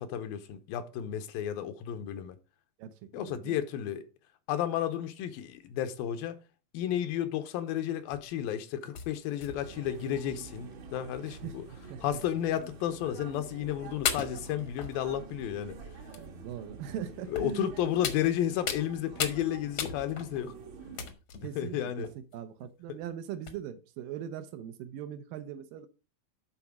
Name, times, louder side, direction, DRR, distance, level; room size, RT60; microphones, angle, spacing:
voice 1, 0.0-2.4 3.1-4.0 4.5-6.4 6.7-11.6 12.0-15.8 17.3-20.5 21.6-22.1 22.9-23.0, left 11 dB, 80° left, 2.6 m, -32 dB
voice 2, 2.8-3.6 11.3-11.6 11.9-12.2 16.1-17.7 21.4-25.9, right 9 dB, 75° right, 2.3 m, -41 dB
sound 1, 8.1-8.3 8.9-10.0 10.7-10.8 11.0-11.1 12.2-12.3 13.3-13.4 14.0-15.4 16.1-16.3 17.4-17.6 18.0-18.9 19.2-19.4 19.8-20.4 21.0-21.5 22.0-22.3 23.0-23.1 23.5-23.6, left 7 dB, 65° left, 1.5 m, -36 dB
sound 2, 9.6-21.1, right 4 dB, 55° right, 1.4 m, -47 dB
11.0 x 4.2 x 4.8 m
omnidirectional pair, 4.1 m